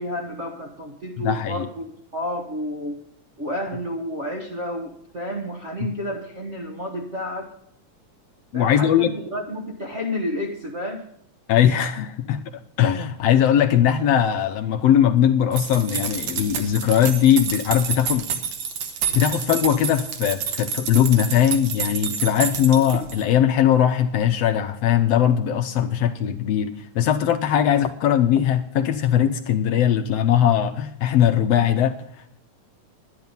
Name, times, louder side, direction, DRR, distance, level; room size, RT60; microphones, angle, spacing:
voice 1, 0.0-3.0 3.4-7.5 8.5-11.0, left 1 dB, 45° right, -1 dB, 0.9 m, -30 dB
voice 2, 1.2-1.7 5.8-5.9 8.5-9.1 11.5-12.4 12.8-18.3 19.1-31.9, left 10 dB, 75° left, 7 dB, 1.6 m, -20 dB
sound 1, 15.5-23.3, right 7 dB, 75° right, 2.6 m, -29 dB
11.0 x 10.5 x 5.3 m, 0.75 s
omnidirectional pair, 3.3 m